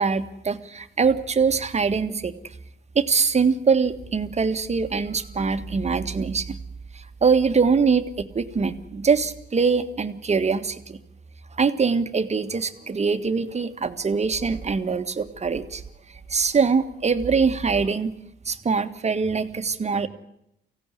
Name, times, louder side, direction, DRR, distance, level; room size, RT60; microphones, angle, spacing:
voice 1, 0.0-2.3 3.0-6.6 6.9-11.0 11.6-15.8 16.3-18.1 18.5-20.1, right 5 dB, 35° right, 9 dB, 1.7 m, -23 dB
24.0 x 16.5 x 9.9 m, 0.82 s
cardioid pair, 90°, 20 cm